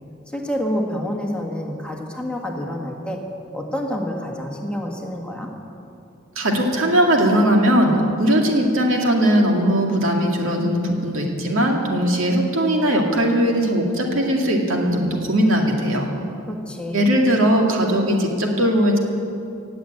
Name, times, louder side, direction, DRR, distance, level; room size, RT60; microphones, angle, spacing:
voice 1, 0.3-3.2 3.5-5.5 16.5-17.1, equal, 5° left, 0 dB, 1.6 m, -28 dB
voice 2, 6.4-16.0 16.9-19.0, equal, 90° right, 1 dB, 2.2 m, -19 dB
17.0 x 7.8 x 8.8 m, 2.7 s
head